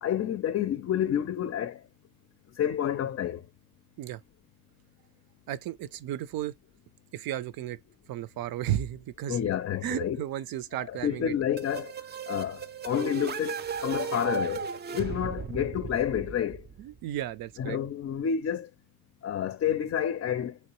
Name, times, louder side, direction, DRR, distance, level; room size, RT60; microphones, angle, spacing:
voice 1, 0.0-1.8 2.5-3.4 9.3-10.2 10.9-11.9 12.3-13.6 13.8-16.6 17.6-18.7 19.2-20.6, left 9 dB, 45° left, 0.5 m, -29 dB
voice 2, 5.5-6.5 7.1-7.8 8.1-9.4 9.8-11.4 16.8-17.8, right 12 dB, 80° right, 0.6 m, -34 dB
sound 1, 11.6-17.2, right 6 dB, 30° right, 0.4 m, -36 dB
3.1 x 3.0 x 3.0 m
cardioid pair, 90°, 35 cm